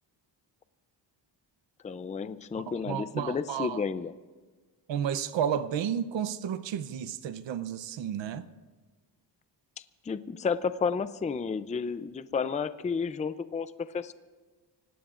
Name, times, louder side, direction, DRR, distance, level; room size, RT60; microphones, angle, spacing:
voice 1, 1.8-4.1 10.0-14.1, left 5 dB, 15° left, 0.4 m, -31 dB
voice 2, 2.7-3.8 4.9-8.5, right 9 dB, 85° right, 0.8 m, -32 dB
26.0 x 18.0 x 2.5 m
wide cardioid pair, 135°, 43 cm